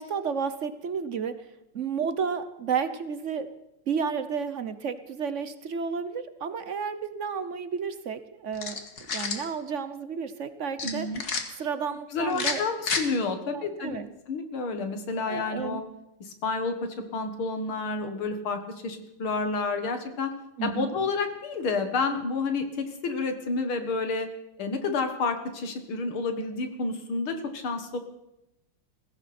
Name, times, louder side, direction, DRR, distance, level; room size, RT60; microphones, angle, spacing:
voice 1, 0.0-1.5 1.7-3.5 3.9-8.8 9.1-11.1 11.6-12.6 13.5-14.1 15.3-15.8 20.6-20.9, right 6 dB, 55° right, 11 dB, 0.8 m, -32 dB
sound 1, 8.5-9.4 10.8-11.4 12.3-13.0, left 5 dB, 50° left, 2.1 m, -30 dB
voice 2, 10.8-11.2 12.1-14.0 14.3-15.8 16.2-16.8 17.1-20.3 20.6-24.3 24.6-28.0, left 4 dB, 75° left, 7 dB, 2.4 m, -30 dB
21.0 x 15.5 x 4.3 m, 0.86 s
omnidirectional pair, 2.4 m